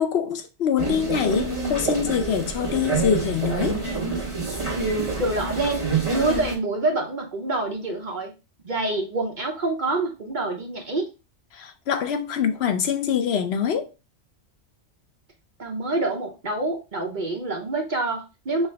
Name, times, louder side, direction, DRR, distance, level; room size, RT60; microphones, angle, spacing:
voice 1, 0.0-3.8 11.5-13.9, left 7 dB, 65° left, 0.9 m, -24 dB
sound 1, 0.8-6.6, right 4 dB, 25° right, 1.4 m, -27 dB
voice 2, 5.2-8.3 8.6-11.1 15.6-18.7, right 2 dB, 45° right, 0.9 m, -26 dB
5.7 x 2.5 x 3.3 m
omnidirectional pair, 1.2 m